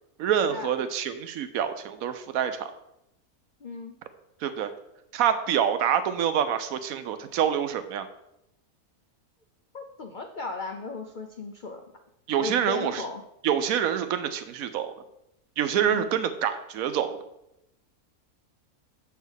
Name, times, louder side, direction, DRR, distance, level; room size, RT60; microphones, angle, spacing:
voice 1, 0.2-2.7 4.4-4.7 5.1-8.1 12.3-13.0 13.4-14.9 15.6-17.2, right 9 dB, 75° right, 11 dB, 1.0 m, -26 dB
voice 2, 3.6-3.9 9.7-11.8 12.4-13.2 15.8-16.1, left 3 dB, 65° left, 4 dB, 0.4 m, -36 dB
7.4 x 3.4 x 6.3 m, 0.85 s
omnidirectional pair, 1.6 m